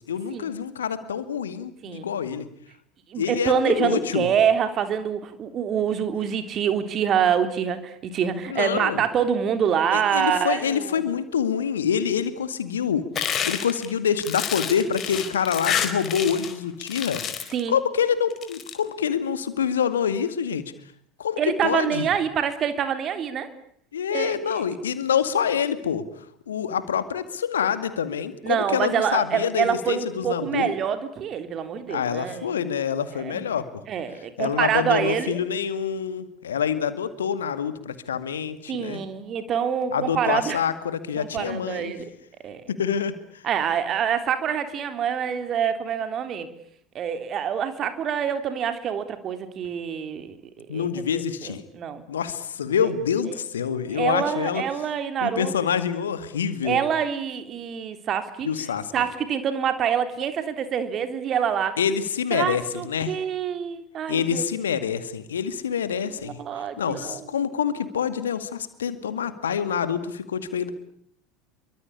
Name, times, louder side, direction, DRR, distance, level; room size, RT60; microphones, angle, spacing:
voice 1, 0.1-2.5 3.2-4.3 8.5-9.0 9.9-13.1 13.5-17.2 17.7-20.6 21.2-22.1 23.9-26.1 26.5-30.7 31.9-33.8 34.4-39.0 39.9-41.9 42.7-43.4 50.7-51.6 52.1-54.6 55.2-56.8 58.4-58.9 61.8-63.2 64.1-66.4 66.8-70.7, left 7 dB, 75° left, 12 dB, 2.2 m, -26 dB
voice 2, 3.1-11.0 17.5-17.7 21.4-23.5 24.1-24.6 28.4-32.6 33.2-33.5 33.9-35.4 38.7-40.6 41.2-42.1 42.4-42.6 43.4-46.5 46.9-52.0 53.3-53.4 53.9-55.5 56.6-58.5 58.9-61.8 62.3-64.4 66.2-67.3, right 8 dB, 40° right, 9 dB, 3.5 m, -26 dB
sound 1, 13.2-16.5 16.8-17.6 18.3-18.7, left 8 dB, 35° left, 4.4 m, -28 dB
27.5 x 24.0 x 8.5 m, 0.66 s
figure-of-eight pair, 75°, 0 cm